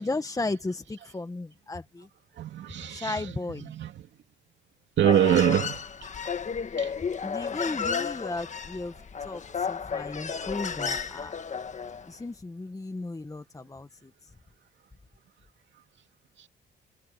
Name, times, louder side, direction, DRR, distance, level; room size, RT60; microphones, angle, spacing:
voice 1, 0.0-2.1 2.9-3.7 7.2-8.9 9.2-11.3 12.1-14.1, left 2 dB, 15° left, 1.4 m, -35 dB
voice 2, 2.4-3.9 5.0-5.8 6.8-6.9, right 10 dB, 65° right, 2.5 m, -25 dB
Human voice, 5.0-12.1, left 6 dB, 35° left, 1.6 m, -32 dB
cardioid pair, 90°, 20 cm